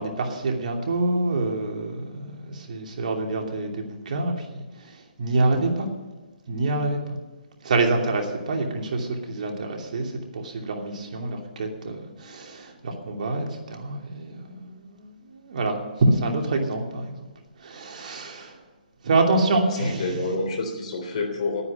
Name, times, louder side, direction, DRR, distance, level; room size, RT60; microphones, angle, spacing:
voice 1, 0.0-4.3 4.8-5.9 6.5-7.2 7.6-17.2 17.6-18.6 19.0-20.2, right 2 dB, 60° right, 2 dB, 2.8 m, -26 dB
voice 2, 19.6-21.6, left 3 dB, 50° left, 4 dB, 3.4 m, -28 dB
11.0 x 9.7 x 8.9 m, 1.2 s
hypercardioid pair, 155°, 5 cm